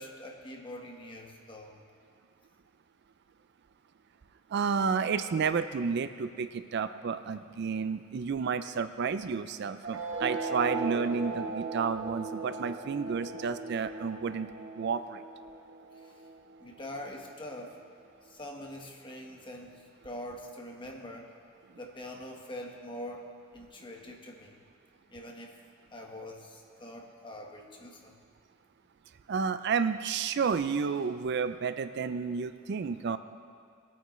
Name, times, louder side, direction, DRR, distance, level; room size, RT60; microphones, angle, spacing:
voice 1, 0.0-1.8 16.0-16.3 16.6-17.8 18.2-21.3 21.8-24.6 25.1-25.5 25.9-28.2, left 1 dB, 25° left, 1 dB, 1.3 m, -44 dB
voice 2, 4.5-15.2 29.3-33.2, right 5 dB, 60° right, 11 dB, 0.4 m, -31 dB
sound 1, 9.8-16.8, right 3 dB, 80° right, 2.5 m, -37 dB
21.0 x 9.1 x 3.2 m, 2.2 s
head